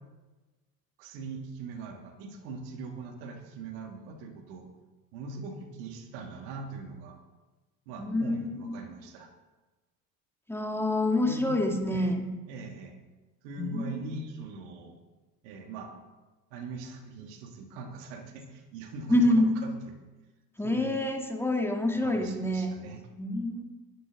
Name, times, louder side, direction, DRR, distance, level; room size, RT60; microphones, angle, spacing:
voice 1, 1.0-4.7 5.1-7.2 7.9-9.3 11.2-12.2 12.5-12.9 13.4-15.0 15.4-15.9 16.5-19.7 20.6-21.0 21.9-23.0, right 3 dB, 60° right, 4 dB, 2.4 m, -41 dB
voice 2, 7.9-8.8 10.5-12.3 13.6-14.0 19.1-19.5 20.6-22.7 23.2-23.6, left 1 dB, 5° left, 2 dB, 2.4 m, -27 dB
21.5 x 11.0 x 3.9 m, 1.2 s
figure-of-eight pair, 60°, 45 cm